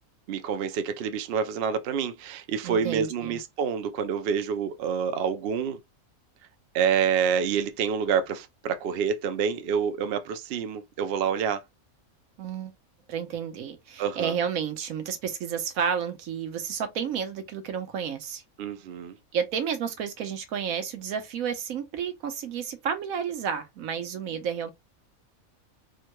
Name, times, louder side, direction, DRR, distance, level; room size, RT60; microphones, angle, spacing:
voice 1, 0.3-5.8 6.7-11.6 14.0-14.3 18.6-19.2, right 7 dB, 60° right, 0.6 m, -27 dB
voice 2, 2.6-3.4 12.4-12.7 13.1-18.4 19.3-24.7, right 7 dB, 80° right, 1.2 m, -31 dB
3.6 x 2.2 x 2.9 m
omnidirectional pair, 1.4 m